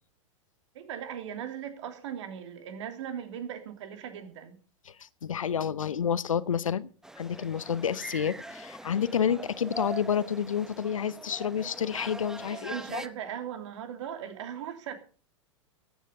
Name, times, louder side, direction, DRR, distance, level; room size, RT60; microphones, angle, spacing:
voice 1, 0.7-4.6 12.5-14.9, right 9 dB, 60° right, 3.0 m, -38 dB
voice 2, 5.2-6.9 7.2-13.0, left 8 dB, 80° left, 0.9 m, -29 dB
sound 1, 7.0-13.1, right 1 dB, 5° right, 0.8 m, -42 dB
15.0 x 9.4 x 5.6 m
hypercardioid pair, 100°, 17 cm